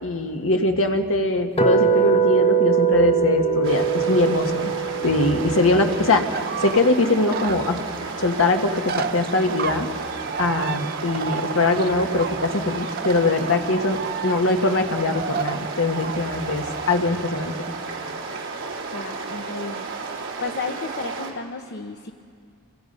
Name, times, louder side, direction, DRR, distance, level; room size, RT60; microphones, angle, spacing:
voice 1, 0.0-4.7 5.0-6.3 6.6-7.8 8.2-9.9 10.4-17.5, left 2 dB, 65° left, 4 dB, 1.6 m, -22 dB
sound 1, 1.6-7.6, right 6 dB, 25° left, 1.2 m, -23 dB
sound 2, 3.6-21.3, right 4 dB, 60° right, 3.3 m, -33 dB
sound 3, 6.3-17.0, right 7 dB, 45° right, 0.7 m, -33 dB
voice 2, 18.9-19.9 20.4-22.1, left 4 dB, 50° left, 4 dB, 0.9 m, -32 dB
28.0 x 24.0 x 5.5 m, 2.3 s
head